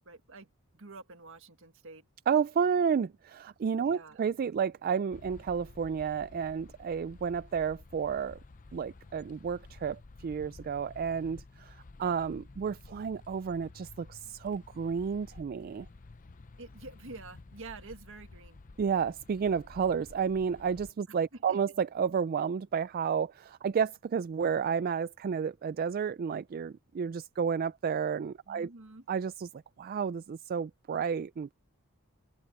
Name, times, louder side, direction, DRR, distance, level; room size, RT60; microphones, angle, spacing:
voice 1, 0.1-2.1 3.8-4.2 16.6-18.6 21.3-21.6 28.5-29.1, right 3 dB, 60° right, 1.7 m, -48 dB
voice 2, 2.3-8.4 8.7-15.9 18.8-28.7 29.1-31.5, right 6 dB, 40° right, 0.3 m, -31 dB
sound 1, 5.1-20.9, left 3 dB, 35° left, 0.6 m, -52 dB
open air
head